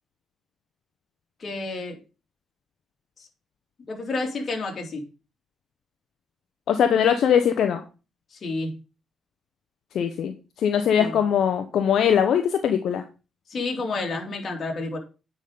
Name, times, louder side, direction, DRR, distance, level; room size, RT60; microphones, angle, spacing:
voice 1, 1.4-2.0 3.9-5.0 8.3-8.7 11.0-11.1 13.5-15.0, left 3 dB, 45° left, 1 dB, 3.3 m, -30 dB
voice 2, 6.7-7.8 9.9-13.0, left 8 dB, 70° left, 7 dB, 0.8 m, -21 dB
9.1 x 5.5 x 5.1 m, 0.32 s
cardioid pair, 90°, 0 cm